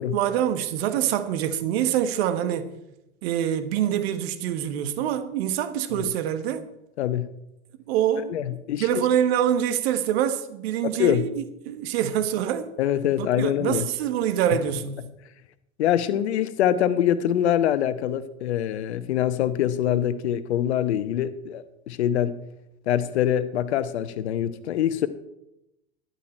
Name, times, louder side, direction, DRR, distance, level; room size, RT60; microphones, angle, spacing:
voice 1, 0.1-2.7 3.2-6.6 7.9-8.4 8.8-11.3 11.7-12.7 13.2-15.0, right 10 dB, 65° right, 1.3 m, -25 dB
voice 2, 7.0-7.3 8.3-9.0 10.8-11.3 12.8-13.9 15.8-22.4 22.9-25.1, left 10 dB, 75° left, 1.0 m, -24 dB
12.0 x 11.0 x 4.4 m
hypercardioid pair, 80°, 33 cm